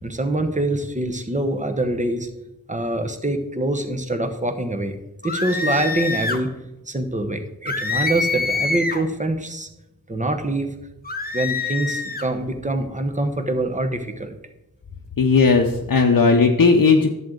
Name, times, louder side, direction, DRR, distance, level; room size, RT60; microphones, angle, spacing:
voice 1, 0.0-2.3 2.7-5.0 5.2-6.5 6.9-9.7 10.1-10.7 11.3-14.4, right 1 dB, 20° right, 7 dB, 1.0 m, -24 dB
sound 1, 5.2-6.4 7.7-9.1 11.0-12.3, left 4 dB, 25° left, 0.9 m, -25 dB
voice 2, 15.2-17.1, left 4 dB, 60° left, 2 dB, 0.8 m, -16 dB
11.0 x 7.7 x 3.9 m, 0.95 s
wide cardioid pair, 90°, 37 cm